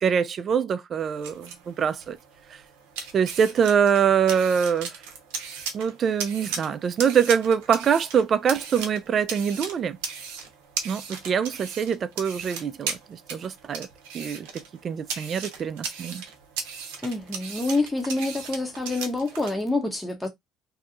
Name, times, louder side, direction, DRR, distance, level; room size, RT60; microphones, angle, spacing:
voice 1, 0.0-2.2 2.5-2.6 3.1-5.0 5.7-10.0 10.8-13.9 14.1-16.2, right 7 dB, 45° right, 0.4 m, -24 dB
sound 1, 1.0-19.5, right 6 dB, 85° right, 0.7 m, -37 dB
voice 2, 17.0-20.3, left 2 dB, 10° left, 0.7 m, -27 dB
2.7 x 2.3 x 2.4 m
hypercardioid pair, 70°, 0 cm